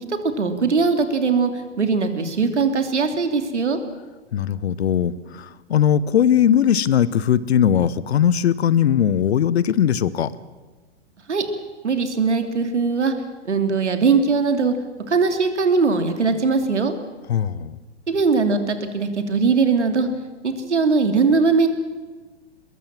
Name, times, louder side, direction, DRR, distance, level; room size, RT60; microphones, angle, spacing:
voice 1, 0.1-3.8 11.3-11.4 11.8-13.1 13.4-14.7 15.1-16.9 18.1-20.1 20.4-21.7, right 4 dB, 80° right, 7 dB, 2.9 m, -20 dB
voice 2, 4.3-10.3 17.3-17.8, left 9 dB, 65° left, 19 dB, 1.1 m, -19 dB
22.5 x 21.5 x 7.5 m, 1.3 s
figure-of-eight pair, 110°, 34 cm